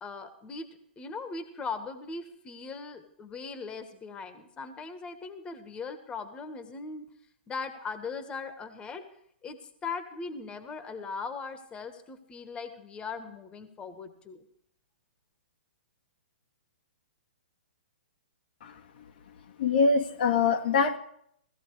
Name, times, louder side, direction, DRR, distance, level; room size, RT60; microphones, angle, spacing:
voice 1, 0.0-7.1 7.5-9.0 9.4-14.4, left 4 dB, 15° left, 9 dB, 1.7 m, -39 dB
voice 2, 19.6-21.0, left 4 dB, 60° left, 5 dB, 1.6 m, -24 dB
17.0 x 14.0 x 5.0 m, 0.68 s
hypercardioid pair, 125°, 6 cm